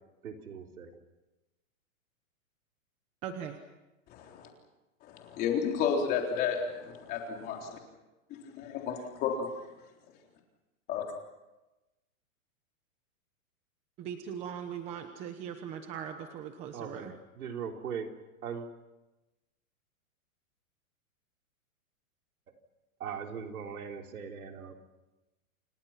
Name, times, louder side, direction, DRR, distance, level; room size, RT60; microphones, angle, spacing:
voice 1, 0.2-0.9 16.7-18.1 18.4-18.7 23.0-24.8, right 7 dB, 90° right, 4.2 m, -40 dB
voice 2, 3.2-3.6 14.0-17.1, right 8 dB, 15° right, 1.0 m, -40 dB
voice 3, 4.1-4.5 5.0-7.8 8.4-9.5 10.9-11.0, left 7 dB, 20° left, 3.8 m, -32 dB
29.5 x 28.0 x 5.9 m
supercardioid pair, 175°, 42 cm